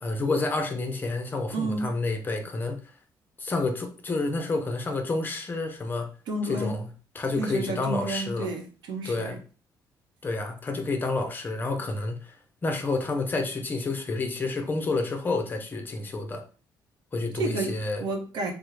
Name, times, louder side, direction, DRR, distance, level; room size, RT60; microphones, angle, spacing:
voice 1, 0.0-2.8 3.4-6.1 6.4-6.9 7.1-8.5 9.0-9.4 10.2-12.3 12.6-16.4 17.1-18.0, left 3 dB, 25° left, 0.5 m, -29 dB
voice 2, 1.5-1.9 6.3-6.8 7.4-9.4 17.3-18.5, right 2 dB, 85° right, 0.7 m, -31 dB
3.6 x 2.0 x 3.1 m
cardioid pair, 135°, 8 cm